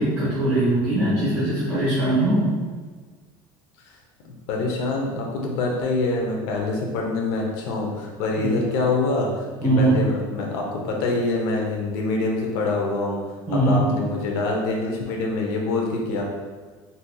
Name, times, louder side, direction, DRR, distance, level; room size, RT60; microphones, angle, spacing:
voice 1, 0.0-2.5 8.4-8.5 9.6-10.0 13.5-13.9, right 1 dB, 10° right, -12 dB, 0.9 m, -21 dB
voice 2, 4.2-13.2 13.5-16.2, left 3 dB, 70° left, 0 dB, 0.7 m, -25 dB
4.0 x 2.8 x 2.3 m, 1.5 s
cardioid pair, 170°, 10 cm